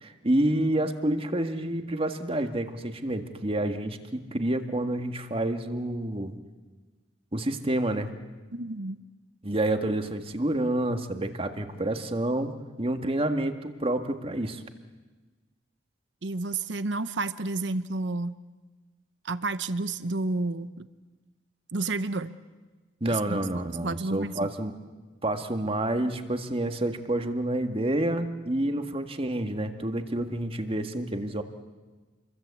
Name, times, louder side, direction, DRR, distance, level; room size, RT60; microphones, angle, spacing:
voice 1, 0.0-6.4 7.3-8.1 9.4-12.5 12.8-14.6 23.0-24.7 25.2-31.4, right 1 dB, 30° right, 7 dB, 1.8 m, -28 dB
voice 2, 8.5-9.0 16.2-18.4 19.2-20.9 21.7-22.3 23.1-24.5, right 3 dB, 70° right, 13 dB, 0.9 m, -31 dB
28.5 x 23.0 x 8.4 m, 1.3 s
head